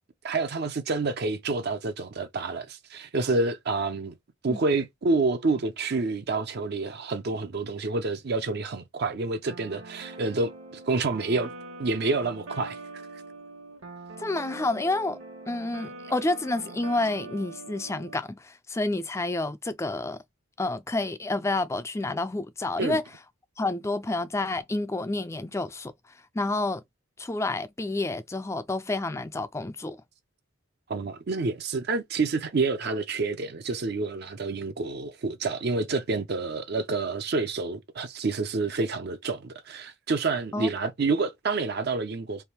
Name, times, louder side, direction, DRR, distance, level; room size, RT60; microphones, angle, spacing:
voice 1, 0.2-4.1 4.4-10.5 10.9-11.5 11.8-13.2 22.8-23.0 30.9-42.4, right 3 dB, 50° right, 0.5 m, -28 dB
sound 1, 9.5-18.2, right 2 dB, 65° right, 1.2 m, -43 dB
voice 2, 14.2-15.2 15.5-20.2 20.6-23.0 23.6-25.9 26.3-26.8 27.2-30.0 40.5-40.7, left 2 dB, 15° left, 0.3 m, -29 dB
3.4 x 2.6 x 4.3 m
head